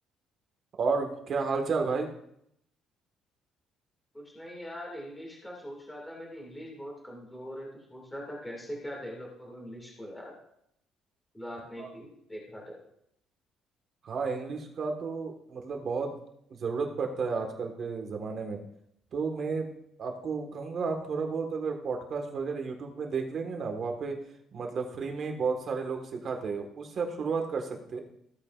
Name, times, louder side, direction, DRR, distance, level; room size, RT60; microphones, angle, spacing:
voice 1, 0.8-2.1 11.8-11.9 14.0-16.1 16.6-18.6 19.1-19.7 20.0-24.2 24.5-28.0, right 4 dB, 40° right, 3 dB, 1.5 m, -32 dB
voice 2, 4.1-10.4 11.3-12.8, equal, 5° left, -2 dB, 2.1 m, -42 dB
15.0 x 8.3 x 2.5 m, 0.73 s
cardioid pair, 170°, 0 cm